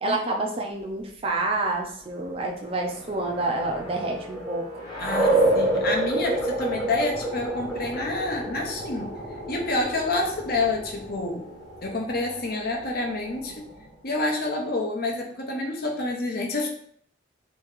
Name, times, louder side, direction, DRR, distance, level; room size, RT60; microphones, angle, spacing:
voice 1, 0.0-5.4 13.6-13.7, right 2 dB, 30° right, 1 dB, 0.5 m, -29 dB
sound 1, 2.5-13.9, right 1 dB, 20° left, 0.9 m, -29 dB
voice 2, 5.0-9.2 9.5-11.5 11.8-13.7 14.0-16.7, left 2 dB, 50° left, 1 dB, 0.7 m, -28 dB
3.0 x 2.8 x 3.7 m, 0.63 s
head